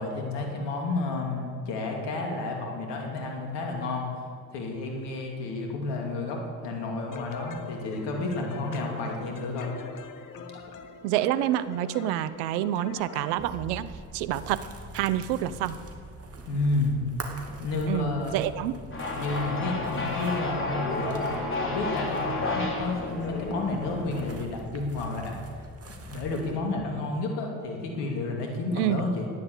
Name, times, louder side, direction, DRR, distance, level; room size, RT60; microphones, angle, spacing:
voice 1, 0.0-4.1 4.5-9.7 16.5-17.0 17.3-18.4 19.1-21.3 21.6-25.4 26.0-29.3, left 3 dB, 65° left, 1 dB, 2.8 m, -31 dB
sound 1, 7.1-13.5, left 6 dB, 45° left, 1.3 m, -43 dB
voice 2, 11.0-14.7 14.9-15.7 17.9-18.8 28.7-29.0, right 13 dB, 80° right, 15 dB, 0.8 m, -28 dB
sound 2, 13.4-26.6, right 1 dB, 35° right, 2.5 m, -43 dB
sound 3, 18.9-24.4, left 2 dB, 30° left, 3.7 m, -31 dB
14.5 x 10.0 x 8.3 m, 2.1 s
hypercardioid pair, 60°, 44 cm